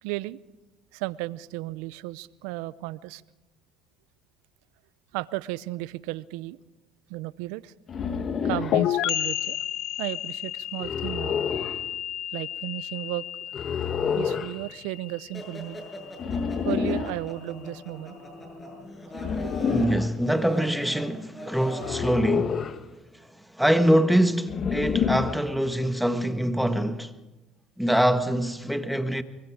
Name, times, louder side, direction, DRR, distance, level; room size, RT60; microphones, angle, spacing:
voice 1, 0.0-0.4 0.9-3.2 5.1-6.6 7.1-7.7 8.4-9.6 10.0-11.4 12.3-13.3 14.1-15.8 16.6-18.2 19.3-19.6, right 18 dB, 80° right, 0.7 m, -34 dB
sound 1, 7.9-8.8 10.8-11.8 13.5-14.5 16.2-17.2 19.1-20.1 21.8-22.8 24.5-25.5, left 6 dB, 45° left, 1.4 m, -28 dB
sound 2, 8.7-16.3, left 12 dB, 65° left, 0.7 m, -31 dB
sound 3, 15.3-22.1, left 1 dB, 20° left, 7.8 m, -41 dB
voice 2, 19.7-22.6 23.6-27.1 27.8-29.2, equal, ahead, 1.6 m, -24 dB
24.0 x 23.5 x 5.0 m
supercardioid pair, 85°, 0 cm